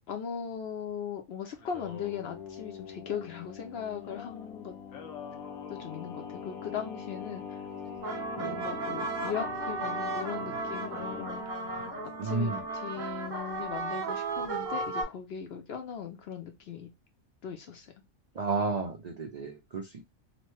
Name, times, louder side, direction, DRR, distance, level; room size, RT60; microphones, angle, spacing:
voice 1, 0.1-4.7 5.7-7.6 8.4-11.5 12.2-16.9 17.4-17.9, left 8 dB, 60° left, 0.7 m, -39 dB
Singing, 1.5-11.3, left 6 dB, 80° left, 1.1 m, -43 dB
sound 1, 7.9-15.0, right 3 dB, 35° right, 1.1 m, -35 dB
voice 2, 8.4-8.7 12.2-12.6 18.4-20.1, right 4 dB, 65° right, 0.4 m, -32 dB
3.0 x 2.1 x 3.0 m
omnidirectional pair, 1.4 m